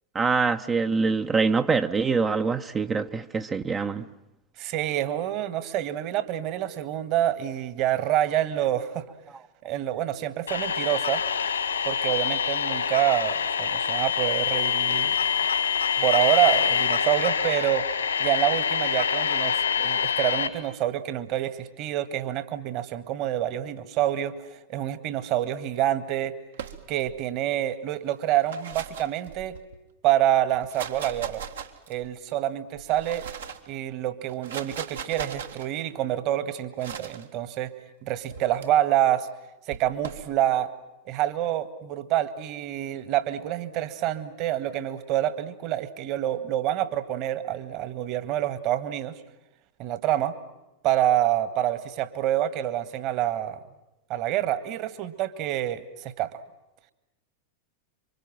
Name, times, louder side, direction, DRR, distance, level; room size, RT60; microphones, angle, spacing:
voice 1, 0.1-4.1, right 4 dB, 20° right, 0.9 m, -24 dB
voice 2, 4.6-9.0 9.6-11.2 11.8-15.2 16.0-17.9 18.2-26.3 26.9-29.5 30.0-31.4 31.9-33.3 33.7-37.7 38.0-39.3 39.7-40.7 41.0-49.1 49.8-50.3 50.8-53.6 54.1-56.3, right 12 dB, 40° right, 1.8 m, -27 dB
sound 1, 10.5-20.5, left 7 dB, 75° left, 2.3 m, -25 dB
sound 2, 26.5-27.2 28.3-29.8 30.5-32.1 32.8-33.7 34.3-35.7 36.8-37.3 38.3-38.7 39.7-40.3, right 7 dB, 65° right, 1.8 m, -39 dB
27.5 x 25.0 x 7.6 m
figure-of-eight pair, 90°, 0 cm